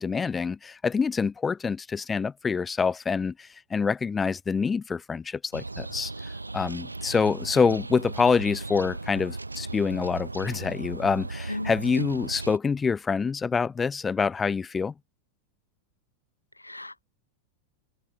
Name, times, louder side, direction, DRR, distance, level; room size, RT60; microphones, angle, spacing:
voice 1, 0.0-6.1 6.5-14.9, left 5 dB, 15° left, 1.7 m, -26 dB
sound 1, 5.5-12.6, right 2 dB, 80° right, 5.5 m, -37 dB
voice 2, 11.5-12.1 16.6-17.0, left 1 dB, 85° left, 0.3 m, -35 dB
figure-of-eight pair, 90°, 0 cm